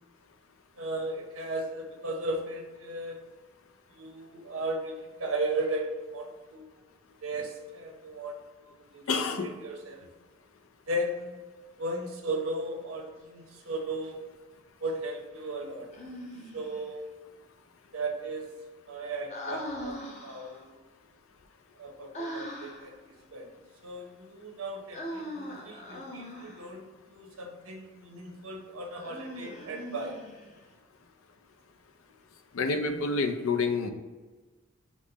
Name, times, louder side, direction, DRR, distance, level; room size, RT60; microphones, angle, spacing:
voice 1, 0.8-3.2 3.9-6.6 7.2-8.4 8.7-9.0 9.4-10.1 10.9-11.4 11.8-14.2 14.8-15.9 16.5-17.1 17.9-18.5 18.9-20.8 21.8-23.5 23.8-30.2, right 2 dB, 85° right, 2 dB, 0.8 m, -36 dB
voice 2, 9.1-9.5 32.5-33.9, left 4 dB, 75° left, 7 dB, 0.5 m, -28 dB
Human voice, 15.9-16.8 19.3-20.6 22.1-22.9 24.9-26.7 29.0-30.6, equal, 35° left, 0.7 m, -40 dB
5.3 x 2.1 x 3.9 m, 1.3 s
head